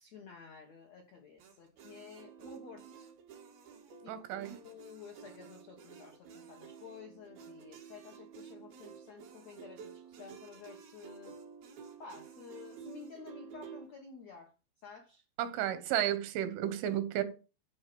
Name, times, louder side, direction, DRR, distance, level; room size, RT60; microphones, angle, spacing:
voice 1, 0.0-3.1 4.0-11.4 12.0-14.5 14.8-15.2, left 5 dB, 75° left, 1.6 m, -52 dB
sound 1, 1.4-13.9, right 7 dB, 60° right, 3.5 m, -51 dB
voice 2, 4.1-4.6 15.4-17.2, right 11 dB, 85° right, 3.7 m, -33 dB
13.0 x 4.5 x 7.7 m
omnidirectional pair, 5.4 m